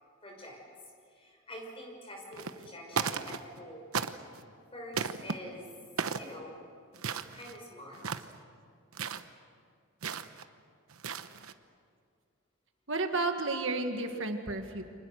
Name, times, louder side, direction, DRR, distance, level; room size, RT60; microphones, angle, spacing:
voice 1, 0.2-0.6 1.1-4.0 4.7-5.7 6.1-6.6 7.3-8.0, equal, 25° left, 0 dB, 6.1 m, -46 dB
sound 1, 2.3-2.7 2.9-3.6 3.9-4.4 4.9-5.3 6.0-6.3 6.9-7.6 7.9-8.4 8.9-9.2 10.0-10.4 10.9-11.5, right 6 dB, 85° right, 1.0 m, -35 dB
voice 2, 12.9-14.8, right 3 dB, 60° right, 5 dB, 1.8 m, -32 dB
29.5 x 26.0 x 6.6 m, 2.2 s
head